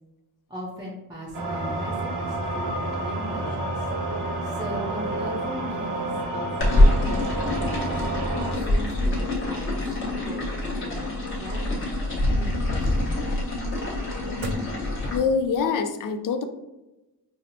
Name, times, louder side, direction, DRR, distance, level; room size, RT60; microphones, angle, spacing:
voice 1, 0.5-3.9 4.4-8.0 8.6-9.6 10.0-13.5, equal, 10° right, -5 dB, 0.6 m, -38 dB
sound 1, 1.3-8.5, right 2 dB, 90° right, 0.8 m, -29 dB
sound 2, 6.6-15.2, left 1 dB, 30° left, 1.1 m, -24 dB
sound 3, 14.3-15.8, right 1 dB, 50° right, 0.4 m, -44 dB
voice 2, 15.1-16.4, left 5 dB, 55° left, 8 dB, 0.5 m, -24 dB
5.6 x 2.1 x 2.7 m, 1.0 s
wide cardioid pair, 140°, 38 cm